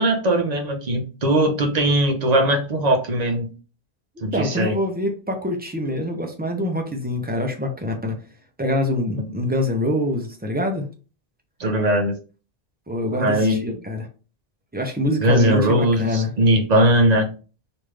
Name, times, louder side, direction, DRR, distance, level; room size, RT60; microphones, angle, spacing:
voice 1, 0.0-3.5 4.2-4.8 9.2-9.3 11.6-12.1 13.2-13.6 15.2-17.3, right 1 dB, 45° right, 4 dB, 0.7 m, -19 dB
voice 2, 4.3-8.1 8.6-10.9 12.9-14.1 14.7-16.3, left 1 dB, 15° right, 2 dB, 0.4 m, -25 dB
3.2 x 2.5 x 3.3 m, 0.36 s
omnidirectional pair, 1.0 m